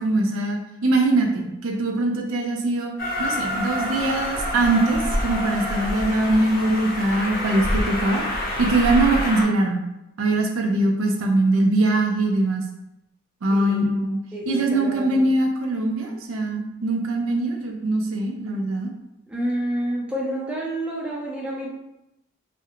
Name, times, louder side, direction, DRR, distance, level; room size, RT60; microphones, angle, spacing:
voice 1, 0.0-2.9 3.2-8.2 8.6-9.8 10.2-12.6 13.4-14.2 14.5-18.9, right 2 dB, 75° right, 2 dB, 0.4 m, -22 dB
Train, 3.0-9.4, left 1 dB, 45° left, 0.5 m, -27 dB
voice 2, 13.5-13.8 14.3-15.2 19.3-21.7, right 1 dB, 5° right, -4 dB, 0.4 m, -29 dB
2.4 x 2.1 x 2.7 m, 0.90 s
head